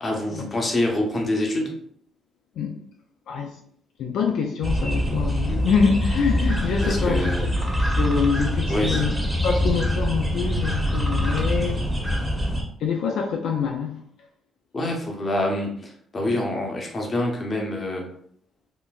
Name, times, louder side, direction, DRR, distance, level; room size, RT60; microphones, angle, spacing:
voice 1, 0.0-1.8 5.5-5.6 6.8-7.4 8.7-9.0 11.3-11.5 14.7-18.1, left 1 dB, 35° left, 1 dB, 0.8 m, -26 dB
voice 2, 4.0-7.3 7.6-9.1 9.4-11.7 12.8-14.0, left 6 dB, 80° left, 1 dB, 0.4 m, -25 dB
sound 1, 4.6-12.6, equal, 5° right, 0.8 m, -24 dB
3.8 x 2.1 x 2.4 m, 0.63 s
cardioid pair, 90°, 0 cm